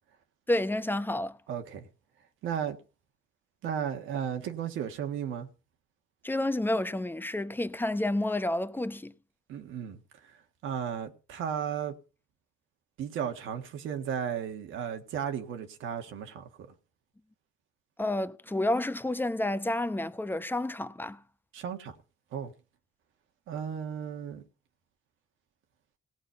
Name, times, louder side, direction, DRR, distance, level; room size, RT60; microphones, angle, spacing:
voice 1, 0.5-1.4 6.2-9.1 18.0-21.2, left 1 dB, 10° left, 0.9 m, -30 dB
voice 2, 1.5-1.9 2.4-2.8 3.6-5.5 9.5-10.0 10.6-11.9 13.0-16.7 21.5-21.9 22.3-22.5 23.5-24.4, right 8 dB, 85° right, 1.6 m, -34 dB
18.0 x 6.1 x 5.8 m
cardioid pair, 90°, 20 cm